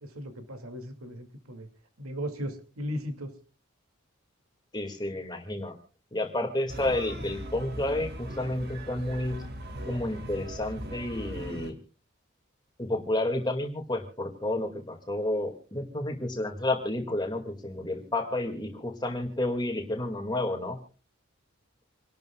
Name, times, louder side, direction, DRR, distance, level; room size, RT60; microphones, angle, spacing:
voice 1, 0.0-1.7 2.0-3.3, equal, 80° right, 7 dB, 2.4 m, -37 dB
voice 2, 4.7-5.7 6.1-9.4 9.8-11.8 12.8-20.8, left 1 dB, 20° left, 4 dB, 2.1 m, -30 dB
sound 1, 6.7-11.7, right 1 dB, 50° right, 2.0 m, -39 dB
27.5 x 12.0 x 2.3 m, 0.36 s
head